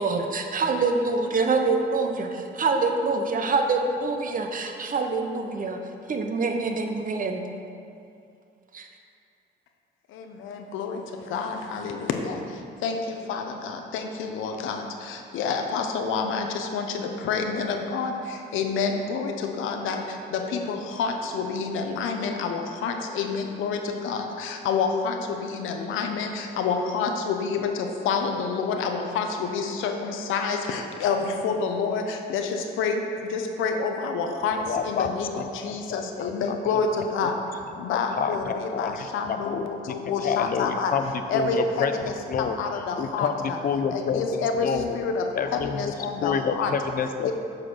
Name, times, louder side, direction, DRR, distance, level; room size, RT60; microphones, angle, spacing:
voice 1, 0.0-5.8 6.1-7.4 8.7-8.9, right 3 dB, 45° right, 4 dB, 0.8 m, -25 dB
voice 2, 10.1-40.9 41.3-43.6 43.9-46.7 47.2-47.3, left 5 dB, 90° left, 4 dB, 0.8 m, -28 dB
voice 3, 34.7-36.8 37.2-37.3 38.2-41.9 42.3-42.6 43.0-45.0 45.4-45.9 46.2-47.3, left 6 dB, 45° left, 9 dB, 0.6 m, -29 dB
7.6 x 4.3 x 6.2 m, 2.5 s
cardioid pair, 90°, 20 cm